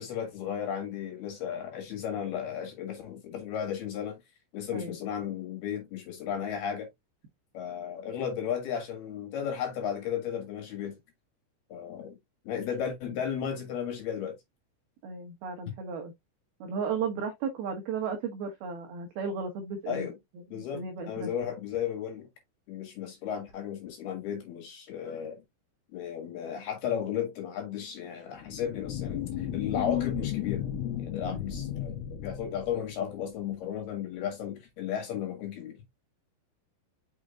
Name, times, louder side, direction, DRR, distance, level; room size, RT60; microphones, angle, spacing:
voice 1, 0.0-4.2 4.5-6.9 7.5-11.0 11.7-12.1 12.4-14.4 19.9-20.1 20.5-22.3 22.7-25.4 25.9-35.8, left 8 dB, 60° left, 3.1 m, -34 dB
voice 2, 15.0-16.1 16.6-20.1 20.5-21.3 31.3-31.5, right 5 dB, 90° right, 2.1 m, -34 dB
sound 1, 28.4-33.4, left 11 dB, 85° left, 3.5 m, -34 dB
6.5 x 6.2 x 2.4 m
omnidirectional pair, 6.0 m